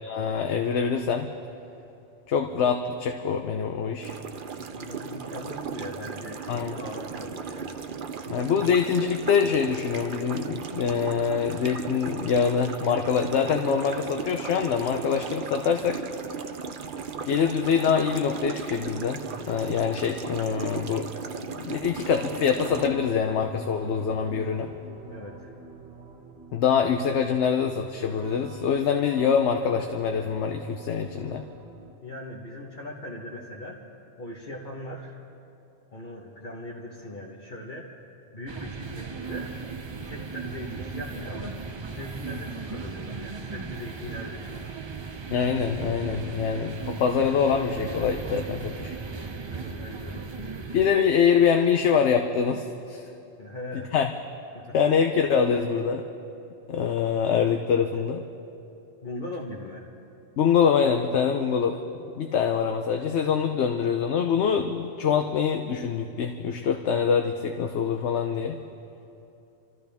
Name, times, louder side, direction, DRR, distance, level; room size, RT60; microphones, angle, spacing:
voice 1, 0.0-1.3 2.3-4.2 6.5-6.8 8.3-16.0 17.3-19.2 19.5-21.1 21.6-24.7 26.5-31.4 45.3-48.9 50.7-53.0 53.9-54.1 54.7-56.0 56.7-58.2 60.4-61.8 62.2-68.6, left 7 dB, 80° left, 5 dB, 1.0 m, -24 dB
sound 1, 4.0-22.9, right 6 dB, 55° right, 0.8 m, -36 dB
voice 2, 4.7-7.8 25.1-25.5 32.0-33.8 34.2-35.2 35.9-37.9 38.3-39.5 40.1-41.6 41.9-44.8 49.4-50.8 53.4-53.9 54.5-54.6 59.0-59.8, left 1 dB, 45° left, -3 dB, 1.4 m, -40 dB
sound 2, 21.9-31.9, right 3 dB, 90° right, 1.3 m, -46 dB
sound 3, 38.5-50.9, right 5 dB, 35° right, 0.4 m, -37 dB
27.0 x 14.0 x 3.5 m, 2.8 s
omnidirectional pair, 1.1 m